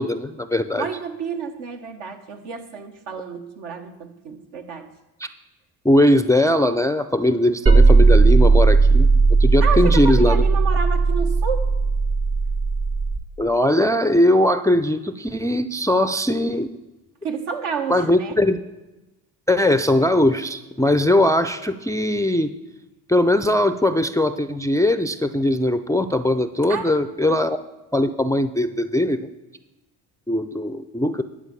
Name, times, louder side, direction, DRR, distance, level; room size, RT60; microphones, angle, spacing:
voice 1, 0.0-0.9 5.8-10.4 13.4-16.7 17.9-18.6 19.5-22.5 23.1-27.6 27.9-29.3 30.3-31.2, left 1 dB, 10° left, 9 dB, 0.4 m, -20 dB
voice 2, 0.8-4.9 9.6-11.7 17.2-18.4 26.7-27.4, right 6 dB, 70° right, 4 dB, 1.4 m, -30 dB
sound 1, 7.7-13.2, right 4 dB, 35° right, 1.2 m, -16 dB
11.0 x 4.5 x 7.4 m, 1.1 s
supercardioid pair, 65°, 44 cm